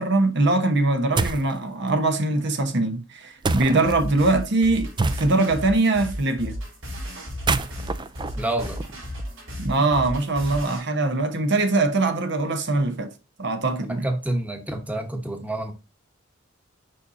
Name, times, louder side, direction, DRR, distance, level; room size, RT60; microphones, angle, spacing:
voice 1, 0.0-4.9 5.2-6.6 9.6-13.1 13.4-14.1, right 2 dB, 60° right, 0.9 m, -22 dB
sound 1, 1.2-1.5 3.4-4.0 5.0-5.6 7.3-9.2, right 3 dB, 25° right, 0.4 m, -27 dB
sound 2, 3.8-10.8, equal, 85° right, 3.9 m, -34 dB
voice 2, 8.4-8.8 13.8-15.7, right 1 dB, 10° right, 1.1 m, -28 dB
6.6 x 5.6 x 2.6 m
head